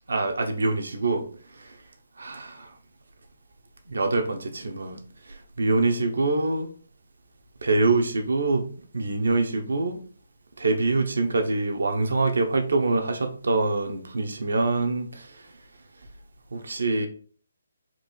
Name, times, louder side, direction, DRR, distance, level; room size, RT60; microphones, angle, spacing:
voice 1, 0.1-1.2 1.6-1.7 2.2-2.7 3.9-5.0 5.3-6.7 7.6-8.7 8.9-10.0 10.6-15.3 16.5-17.1, right 3 dB, 80° right, 5 dB, 0.9 m, -25 dB
4.5 x 2.7 x 4.3 m, 0.43 s
hypercardioid pair, 150°, 0 cm